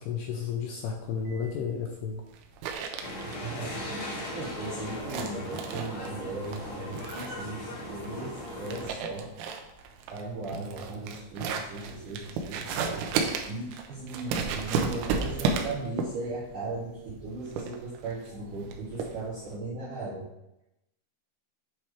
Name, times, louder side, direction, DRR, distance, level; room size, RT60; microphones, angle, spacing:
voice 1, 0.0-2.2, left 6 dB, 85° left, 2 dB, 2.4 m, -32 dB
sound 1, 0.9-19.5, right 5 dB, 90° right, 3.0 m, -34 dB
sound 2, 3.0-8.9, left 1 dB, 60° left, 1.6 m, -38 dB
voice 2, 3.2-9.3 10.1-13.1 13.5-20.3, right 3 dB, 70° right, -8 dB, 2.0 m, -37 dB
8.4 x 3.2 x 4.4 m, 0.90 s
omnidirectional pair, 5.2 m